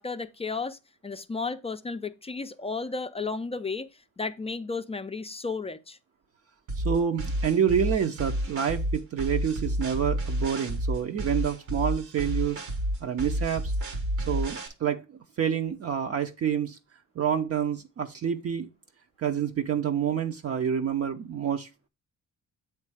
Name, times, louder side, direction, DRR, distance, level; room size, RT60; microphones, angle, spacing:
voice 1, 0.0-3.9 4.2-6.0, left 4 dB, 20° left, 0.4 m, -33 dB
sound 1, 6.7-14.7, equal, 80° right, 1.5 m, -30 dB
voice 2, 6.8-12.6 13.0-13.7 14.3-16.8 17.2-18.7 19.2-21.7, right 8 dB, 50° right, 0.7 m, -28 dB
7.6 x 3.3 x 4.7 m
cardioid pair, 90°, 30 cm